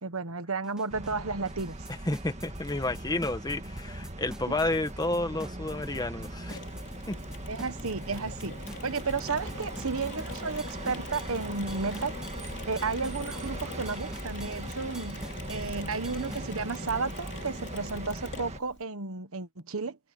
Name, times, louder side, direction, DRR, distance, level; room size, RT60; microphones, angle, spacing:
voice 1, 0.0-1.9 4.5-4.6 7.5-8.6 8.8-12.2 12.7-20.0, right 4 dB, 70° right, 1.3 m, -33 dB
sound 1, 0.6-16.5, equal, 5° right, 1.8 m, -47 dB
sound 2, 0.9-18.6, right 1 dB, 30° right, 1.9 m, -39 dB
voice 2, 2.1-6.6 7.1-7.2, left 2 dB, 20° left, 1.4 m, -31 dB
Mechanisms, 6.5-18.8, left 4 dB, 55° left, 3.1 m, -45 dB
head